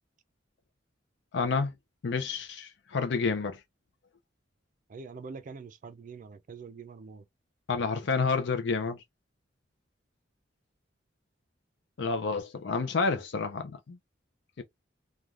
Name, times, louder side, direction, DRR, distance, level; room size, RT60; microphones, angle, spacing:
voice 1, 1.3-1.7 2.0-3.6 7.7-9.0 12.0-14.0 14.6-14.7, left 4 dB, 65° left, 0.5 m, -29 dB
voice 2, 4.9-7.2, right 4 dB, 45° right, 0.4 m, -44 dB
3.2 x 2.2 x 2.4 m
head